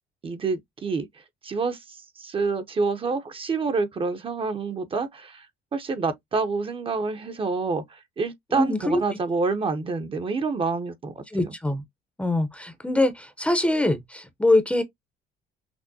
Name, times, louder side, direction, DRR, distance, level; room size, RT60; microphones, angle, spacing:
voice 1, 0.2-1.1 1.4-5.5 5.7-11.1 11.4-11.5, right 4 dB, 30° right, 0.7 m, -27 dB
voice 2, 8.5-9.0 11.3-11.8 12.2-14.8, left 2 dB, 5° left, 0.6 m, -23 dB
6.0 x 2.1 x 2.6 m
cardioid pair, 110°, 17 cm